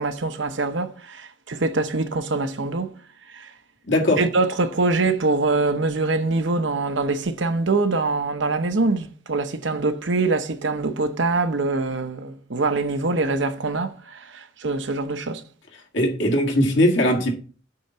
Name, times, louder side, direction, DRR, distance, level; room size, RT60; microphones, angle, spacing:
voice 1, 0.0-2.9 3.3-3.5 4.2-15.4, right 3 dB, 65° right, 0.9 m, -24 dB
voice 2, 3.9-4.2 15.9-17.3, left 1 dB, 65° left, 1.8 m, -19 dB
8.6 x 3.8 x 5.7 m
head